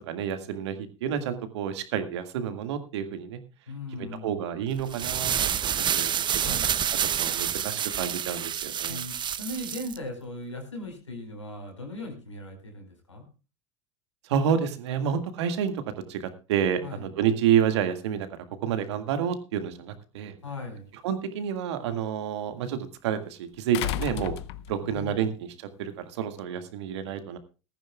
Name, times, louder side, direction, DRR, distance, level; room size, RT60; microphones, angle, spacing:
voice 1, 0.1-3.4 4.2-6.7 7.0-9.0 14.2-15.8 16.1-16.2 16.5-18.3 18.6-20.3 21.0-24.4 24.7-27.4, right 8 dB, 70° right, 9 dB, 1.9 m, -29 dB
voice 2, 3.7-4.3 6.4-6.7 8.9-13.3 16.8-17.1 20.4-20.9 24.8-25.3, left 2 dB, 90° left, 4 dB, 4.8 m, -38 dB
sound 1, 4.8-10.0, right 9 dB, 30° right, 0.8 m, -28 dB
sound 2, 20.5-20.6 23.7-25.0 26.4-26.5, left 13 dB, 65° left, 0.7 m, -32 dB
18.5 x 14.5 x 2.3 m, 0.32 s
figure-of-eight pair, 80°, 15 cm